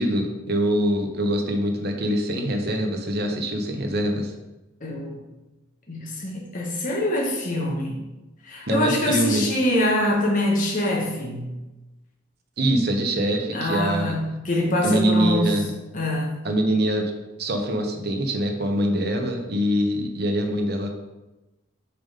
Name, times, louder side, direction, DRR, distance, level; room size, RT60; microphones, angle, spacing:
voice 1, 0.0-4.3 8.7-9.4 12.6-14.1 14.8-15.7 16.4-17.1 17.4-20.9, right 1 dB, 50° right, 3 dB, 1.0 m, -24 dB
voice 2, 4.8-5.2 5.9-8.0 8.4-11.5 13.5-15.5 15.9-16.3, left 1 dB, 40° left, -1 dB, 1.4 m, -24 dB
6.8 x 4.1 x 5.2 m, 1.0 s
head